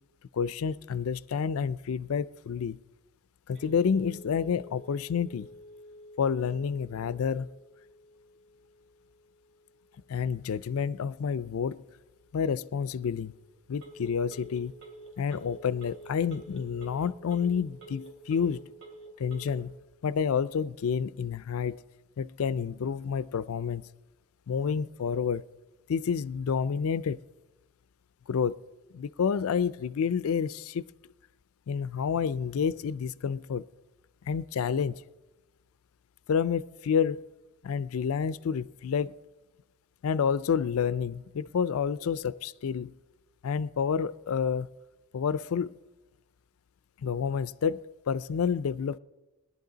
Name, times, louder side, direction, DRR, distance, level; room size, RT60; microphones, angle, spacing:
voice 1, 0.3-2.8 3.5-5.5 6.2-7.5 10.1-11.9 12.3-13.3 13.7-14.7 15.2-18.6 19.2-19.7 20.0-21.8 22.2-23.8 24.5-25.4 25.9-27.2 28.3-28.6 28.9-30.8 31.7-33.6 34.3-35.0 36.3-37.2 37.6-39.1 40.0-42.9 43.4-44.7 45.1-45.7 47.0-49.0, left 6 dB, 70° left, 0.4 m, -29 dB
Telephone, 3.5-19.6, right 1 dB, 60° right, 3.1 m, -51 dB
20.0 x 11.0 x 3.9 m
head